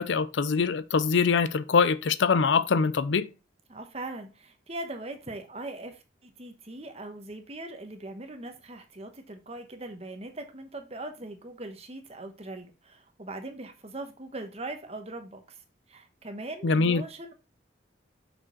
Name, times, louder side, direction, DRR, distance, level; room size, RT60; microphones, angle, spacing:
voice 1, 0.0-3.3 16.6-17.0, left 5 dB, 70° left, 0.5 m, -23 dB
voice 2, 3.7-15.6 15.9-17.3, right 2 dB, 35° right, 1.1 m, -40 dB
6.2 x 5.0 x 4.4 m
head